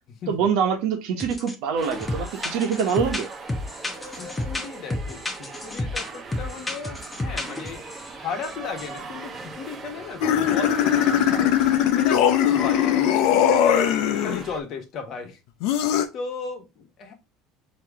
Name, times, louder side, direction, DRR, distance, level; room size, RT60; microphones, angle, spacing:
voice 1, 0.3-3.3, right 7 dB, 70° right, 1.1 m, -24 dB
sound 1, 1.2-1.5 1.8-8.1 8.4-9.0, left 2 dB, 15° left, 0.8 m, -31 dB
sound 2, 1.8-14.6, right 4 dB, 30° right, 0.9 m, -40 dB
voice 2, 4.0-7.9 8.1-11.5 11.9-13.9 14.2-15.4 16.1-17.1, left 5 dB, 50° left, 1.3 m, -35 dB
sound 3, 10.2-14.4 15.6-16.0, left 10 dB, 70° left, 0.7 m, -20 dB
4.7 x 3.0 x 3.5 m
supercardioid pair, 105°, 0 cm